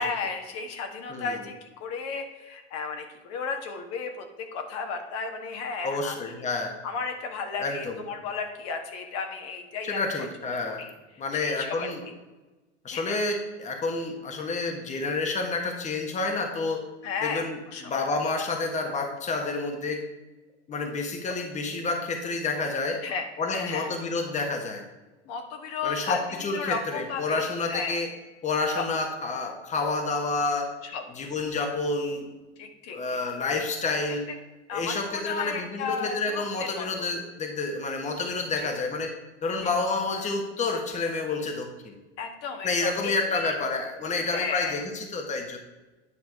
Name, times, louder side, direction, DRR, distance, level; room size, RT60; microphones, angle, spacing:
voice 1, 0.0-1.5 1.8-4.2 4.5-6.3 6.8-10.0 10.7-10.9 11.3-12.1 12.9-13.2 17.0-17.4 17.7-17.9 23.0-23.3 23.5-23.9 25.3-26.2 26.5-27.4 27.7-28.0 28.7-28.8 30.8-31.0 32.6-33.2 34.7-37.1 38.6-38.7 39.6-39.7 42.2-43.5 44.3-44.8, left 5 dB, 45° left, 4 dB, 1.5 m, -34 dB
voice 2, 1.1-1.4 5.8-6.7 7.6-8.0 9.8-10.9 11.2-12.1 12.8-16.8 17.2-20.0 20.7-23.0 23.4-24.8 25.8-28.1 28.4-30.7 31.1-32.3 32.9-34.2 34.7-39.1 39.4-41.9 42.6-45.6, left 3 dB, 20° left, 4 dB, 1.4 m, -29 dB
10.0 x 6.0 x 4.7 m, 1.1 s
hypercardioid pair, 90°, 33 cm